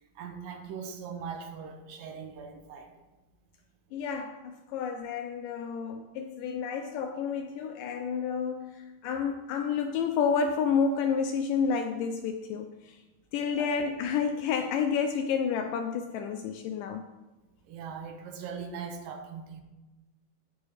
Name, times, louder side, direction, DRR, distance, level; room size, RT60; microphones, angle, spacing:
voice 1, 0.2-2.9 13.6-13.7 17.7-19.6, right 6 dB, 75° right, 4 dB, 2.5 m, -40 dB
voice 2, 3.9-13.0 13.3-17.0, left 6 dB, 90° left, 6 dB, 1.8 m, -30 dB
16.5 x 5.6 x 3.4 m, 1.1 s
omnidirectional pair, 4.4 m